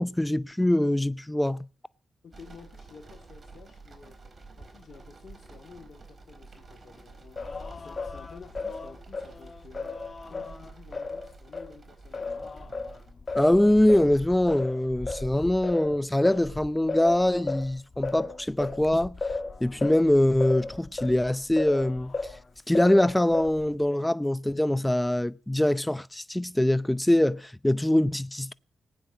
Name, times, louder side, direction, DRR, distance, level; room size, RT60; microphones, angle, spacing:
voice 1, 0.0-1.6 13.3-19.1 19.6-22.1 22.7-28.5, left 1 dB, 10° left, 0.6 m, -23 dB
voice 2, 2.2-4.2 4.6-10.0 10.3-12.6, left 5 dB, 60° left, 2.3 m, -51 dB
sound 1, 2.3-13.1, right 3 dB, 45° right, 4.1 m, -50 dB
Singing, 7.4-11.7 12.1-22.4 22.7-23.8, left 3 dB, 40° left, 1.7 m, -35 dB
19.5 x 9.3 x 6.2 m
supercardioid pair, 50°, 0 cm